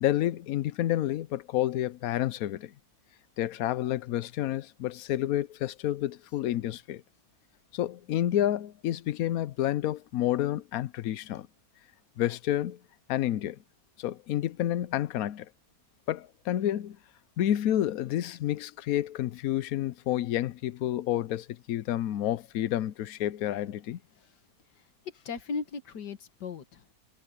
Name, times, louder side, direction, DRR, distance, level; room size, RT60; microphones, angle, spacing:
voice 1, 0.0-2.7 3.4-7.0 7.7-11.5 12.2-12.8 13.1-13.6 14.0-15.5 16.1-17.0 17.4-24.0, left 12 dB, 65° left, 1.0 m, -29 dB
voice 2, 24.8-26.9, left 5 dB, 85° left, 2.2 m, -38 dB
omnidirectional pair, 1.8 m